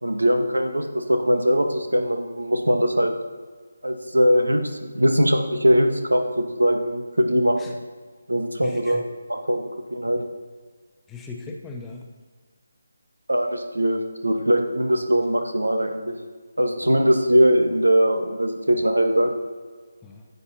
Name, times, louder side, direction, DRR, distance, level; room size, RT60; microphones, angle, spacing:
voice 1, 0.0-3.1 3.8-7.7 8.3-9.0 9.3-10.3 13.3-16.1 16.6-19.3, equal, 80° right, 5 dB, 1.3 m, -21 dB
voice 2, 8.6-9.0 11.1-12.1 16.8-17.1 20.0-20.3, left 4 dB, 10° left, 0 dB, 0.8 m, -39 dB
14.5 x 8.1 x 2.8 m, 1.5 s
figure-of-eight pair, 150°, 0 cm